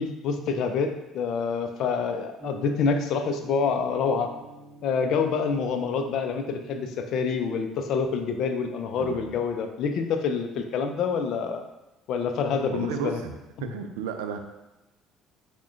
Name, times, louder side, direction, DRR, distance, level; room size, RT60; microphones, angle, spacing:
voice 1, 0.0-4.3 4.8-11.6 12.1-13.2, left 5 dB, 65° left, 6 dB, 0.4 m, -27 dB
sound 1, 2.4-9.2, right 2 dB, 15° right, 1.0 m, -47 dB
voice 2, 9.0-9.3 12.7-13.3 13.6-14.4, right 6 dB, 80° right, 6 dB, 0.3 m, -33 dB
5.8 x 2.2 x 2.5 m, 0.99 s
hypercardioid pair, 60°, 0 cm